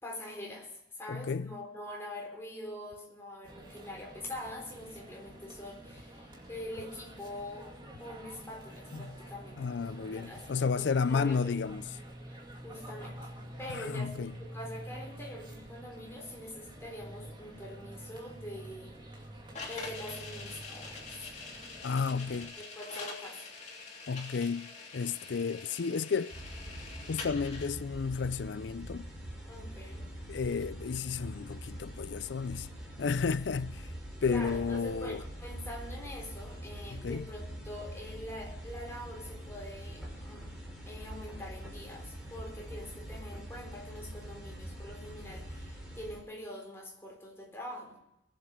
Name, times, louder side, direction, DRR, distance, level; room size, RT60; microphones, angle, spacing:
voice 1, 0.0-11.6 12.2-13.3 13.6-19.3 19.7-21.2 22.6-23.5 29.5-30.1 34.3-40.5 40.9-48.0, left 1 dB, 15° left, 3.8 m, -44 dB
voice 2, 1.1-1.5 8.9-9.1 9.6-11.9 13.7-14.3 21.8-22.5 24.1-26.4 27.1-29.1 30.3-32.7 33.0-33.9 34.2-35.2 36.9-37.3, left 5 dB, 70° left, 0.5 m, -32 dB
sound 1, 3.4-22.5, right 1 dB, 25° right, 2.4 m, -48 dB
sound 2, 19.5-27.7, left 4 dB, 40° left, 3.1 m, -45 dB
sound 3, 26.3-46.2, right 1 dB, 5° right, 4.3 m, -44 dB
20.5 x 8.0 x 5.3 m
head